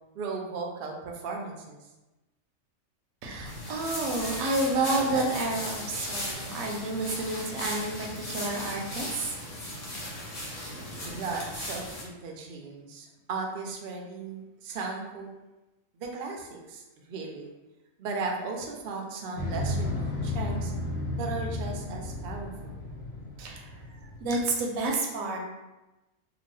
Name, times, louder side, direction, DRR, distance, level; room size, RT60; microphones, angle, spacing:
voice 1, 0.1-1.9 11.1-15.3 15.9-17.5 18.0-20.7 21.1-22.8, right 4 dB, 65° right, 1 dB, 0.5 m, -36 dB
voice 2, 3.2-9.4 23.4-23.7 24.2-25.4, right 2 dB, 80° right, 0 dB, 1.0 m, -30 dB
sound 1, 3.5-12.0, left 1 dB, 40° left, 0.6 m, -37 dB
Motorcycle, 19.4-24.6, left 1 dB, 70° left, 0.9 m, -33 dB
2.9 x 2.2 x 3.1 m, 1.0 s
omnidirectional pair, 1.4 m